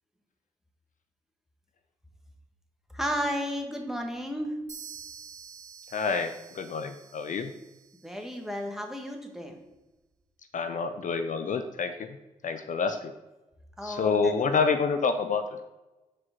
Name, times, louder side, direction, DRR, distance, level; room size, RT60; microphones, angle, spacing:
voice 1, 2.9-4.5 8.0-9.5 13.8-14.3, equal, 5° right, 2 dB, 1.4 m, -33 dB
sound 1, 4.7-8.4, right 6 dB, 50° right, 1.1 m, -48 dB
voice 2, 5.9-7.5 10.5-12.1 12.4-13.1 13.8-15.6, left 5 dB, 55° left, 7 dB, 0.5 m, -28 dB
4.9 x 3.9 x 5.8 m, 1.1 s
supercardioid pair, 45°, 16 cm